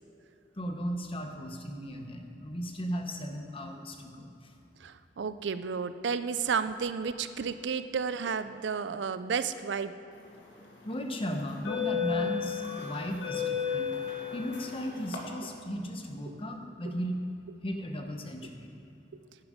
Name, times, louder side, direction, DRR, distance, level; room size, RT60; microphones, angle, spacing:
voice 1, 0.6-4.5 10.8-13.9 14.3-17.2 17.6-18.7, equal, 30° left, 4 dB, 1.0 m, -36 dB
voice 2, 4.8-9.9 16.3-16.4 16.9-17.0 19.1-19.2, right 6 dB, 90° right, 12 dB, 0.5 m, -32 dB
sound 1, 10.4-10.6 11.4-15.2, left 7 dB, 85° left, 1.9 m, -33 dB
10.5 x 10.5 x 5.0 m, 2.9 s
head